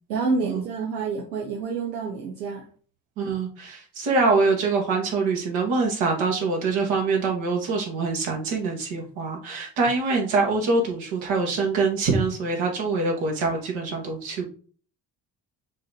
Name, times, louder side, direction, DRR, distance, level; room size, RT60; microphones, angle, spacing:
voice 1, 0.1-2.6, right 4 dB, 85° right, -1 dB, 1.1 m, -28 dB
voice 2, 3.2-14.5, right 3 dB, 70° right, 0 dB, 2.2 m, -24 dB
6.2 x 3.1 x 5.3 m, 0.42 s
hypercardioid pair, 45°, 49 cm